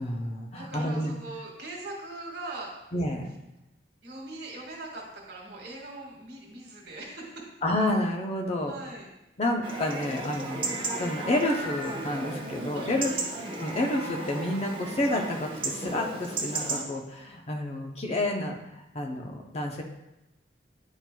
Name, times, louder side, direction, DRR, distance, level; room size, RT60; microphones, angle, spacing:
voice 1, 0.0-1.1 2.9-3.3 7.6-8.7 9.4-10.7 11.0-13.1 13.6-18.6 18.9-19.8, left 1 dB, 35° left, 2 dB, 0.6 m, -29 dB
voice 2, 0.5-2.7 4.0-7.5 8.7-9.1 12.7-13.3, right 2 dB, 65° right, -2 dB, 1.6 m, -41 dB
Chatter / Livestock farm animals working animals / Chirp tweet, 9.6-16.8, right 2 dB, 30° right, 1.0 m, -34 dB
9.7 x 4.4 x 2.2 m, 0.94 s
head